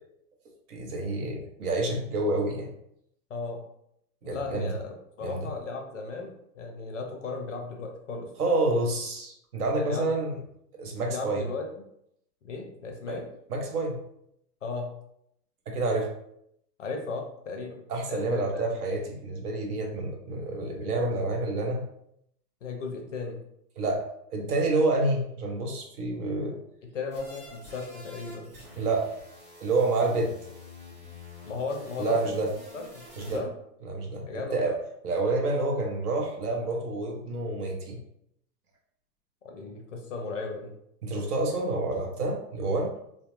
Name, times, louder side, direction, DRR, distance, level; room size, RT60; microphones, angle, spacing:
voice 1, 0.7-2.7 4.2-4.7 5.2-5.5 8.4-10.4 10.7-11.5 13.1-13.2 13.5-14.0 15.7-16.1 17.9-21.8 23.8-24.0 24.3-26.6 28.8-29.1 29.6-30.3 32.0-32.5 33.2-33.4 33.8-34.7 35.0-38.0 41.0-42.9, right 2 dB, 65° right, 1 dB, 0.8 m, -28 dB
voice 2, 3.3-3.6 4.2-8.3 9.7-10.1 11.1-11.6 12.4-13.3 14.6-14.9 16.8-17.8 18.1-18.7 22.6-23.4 26.9-28.5 31.4-32.4 32.7-33.5 34.3-34.6 39.4-40.7, left 4 dB, 50° left, 2 dB, 0.5 m, -36 dB
sound 1, 27.1-33.4, left 2 dB, 25° right, 0.8 m, -48 dB
2.4 x 2.0 x 2.9 m, 0.75 s
hypercardioid pair, 165°, 50 cm